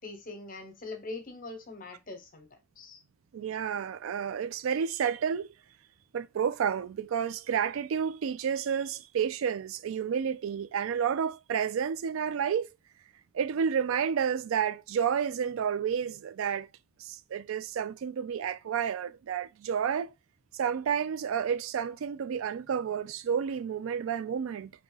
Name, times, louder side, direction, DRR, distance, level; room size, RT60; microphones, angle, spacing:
voice 1, 0.0-3.0, left 3 dB, 45° left, 0.9 m, -42 dB
voice 2, 3.3-5.5 6.1-12.7 13.3-16.7 17.0-20.1 20.5-24.7, right 7 dB, 85° right, 0.3 m, -30 dB
3.7 x 2.7 x 3.9 m
head